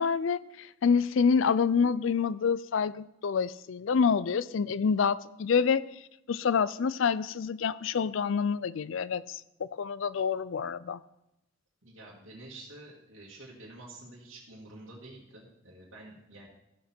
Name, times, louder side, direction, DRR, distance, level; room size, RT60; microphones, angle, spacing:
voice 1, 0.0-5.8 6.3-11.0, left 6 dB, 75° left, 18 dB, 0.4 m, -27 dB
voice 2, 11.8-16.5, right 2 dB, 90° right, -4 dB, 2.1 m, -48 dB
14.5 x 6.6 x 4.4 m, 0.86 s
head